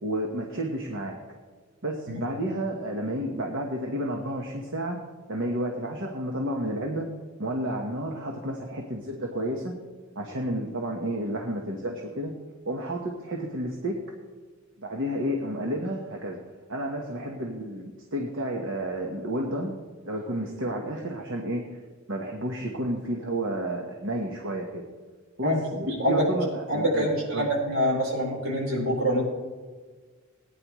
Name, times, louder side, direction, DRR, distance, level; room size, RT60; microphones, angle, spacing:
voice 1, 0.0-1.2 1.8-5.0 5.3-7.1 7.4-9.7 10.1-12.3 12.7-14.0 14.8-16.4 16.7-19.7 20.0-21.8 22.1-24.8 25.4-27.5, right 1 dB, 60° right, 1 dB, 1.2 m, -31 dB
voice 2, 26.7-29.2, equal, 80° right, -2 dB, 4.3 m, -25 dB
18.0 x 9.9 x 3.1 m, 1.4 s
head